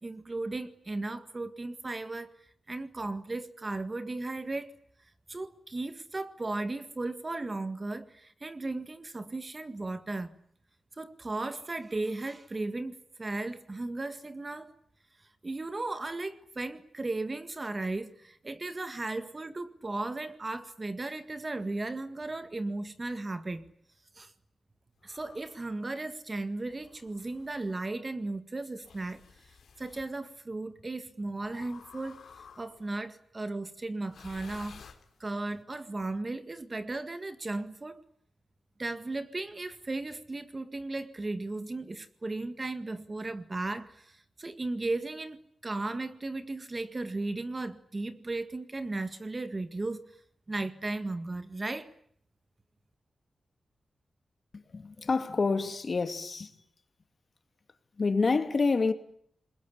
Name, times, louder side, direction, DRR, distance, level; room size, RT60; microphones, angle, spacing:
voice 1, 0.0-2.3 2.7-4.7 5.3-10.3 11.0-14.7 15.4-23.6 24.1-24.3 25.0-29.2 29.8-32.3 32.6-34.9 35.2-38.0 38.8-50.1 50.5-51.9, right 2 dB, 30° right, 1.8 m, -36 dB
sound 1, 25.0-25.7 26.7-27.9 28.8-30.1 31.4-33.0 34.0-35.5, left 6 dB, 90° left, 3.0 m, -53 dB
voice 2, 54.5-56.5 58.0-58.9, left 4 dB, 45° left, 2.6 m, -28 dB
28.0 x 21.5 x 9.8 m
wide cardioid pair, 110°, 0 cm